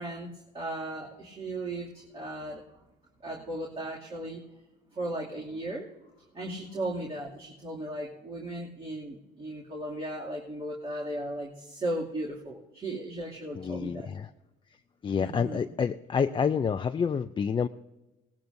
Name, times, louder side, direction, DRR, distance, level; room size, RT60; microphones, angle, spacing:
voice 1, 0.0-2.6 3.2-4.4 4.9-5.9 6.3-14.1 15.2-15.6, right 1 dB, 30° right, -4 dB, 2.6 m, -36 dB
voice 2, 13.6-14.3 15.0-17.7, left 6 dB, 25° left, 7 dB, 0.4 m, -28 dB
20.5 x 18.5 x 2.7 m, 1.1 s
supercardioid pair, 85°, 19 cm